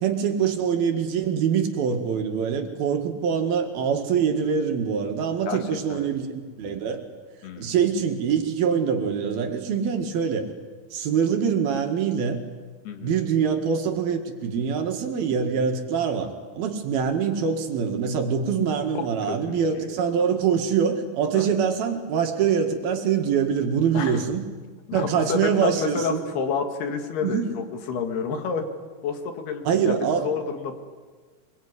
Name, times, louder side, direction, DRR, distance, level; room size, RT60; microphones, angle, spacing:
voice 1, 0.0-7.0 7.6-10.5 10.9-12.4 13.0-24.4 24.9-26.2 27.2-27.5 29.7-30.3, right 7 dB, 65° right, 5 dB, 3.7 m, -24 dB
voice 2, 7.4-7.8 12.9-13.1 19.0-20.0 21.3-21.6 23.9-24.2 24.9-28.7 29.0-30.8, left 5 dB, 75° left, 6 dB, 3.9 m, -30 dB
25.5 x 22.5 x 9.7 m, 1.5 s
omnidirectional pair, 4.7 m